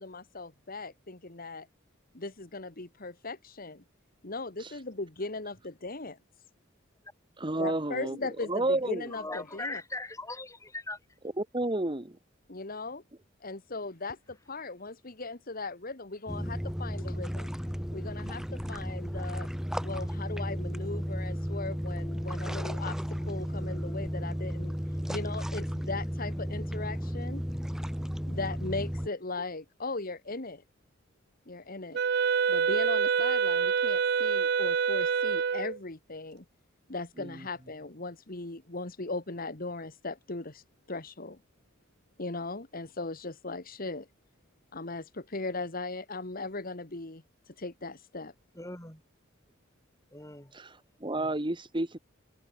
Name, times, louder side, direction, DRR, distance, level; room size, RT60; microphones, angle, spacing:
voice 1, 0.0-1.7 2.1-3.8 4.2-6.2 7.6-9.8 12.5-13.0 13.4-17.5 17.9-19.5 19.8-24.7 25.1-27.4 28.3-30.6 31.5-32.0 32.5-36.4 36.9-41.4 42.2-44.1 44.7-48.3, left 3 dB, 45° left, 1.9 m, -38 dB
voice 2, 7.4-8.2 8.5-9.0 11.4-12.2 37.2-37.4 50.5-52.0, right 2 dB, 25° right, 1.5 m, -31 dB
voice 3, 9.1-11.0 48.5-49.0 50.1-50.5, left 2 dB, 15° left, 7.7 m, -39 dB
sound 1, 16.3-29.1, equal, 5° right, 2.7 m, -34 dB
Wind instrument woodwind instrument, 31.9-35.8, right 6 dB, 55° right, 0.5 m, -26 dB
head